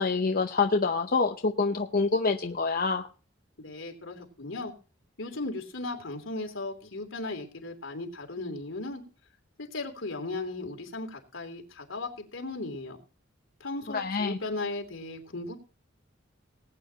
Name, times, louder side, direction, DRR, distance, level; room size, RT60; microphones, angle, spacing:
voice 1, 0.0-3.1 13.9-14.4, left 4 dB, 50° left, 5 dB, 0.8 m, -26 dB
voice 2, 3.6-4.7 5.2-9.0 9.6-13.0 13.6-15.6, left 2 dB, 85° left, 3 dB, 3.1 m, -36 dB
19.5 x 9.0 x 2.9 m, 0.35 s
head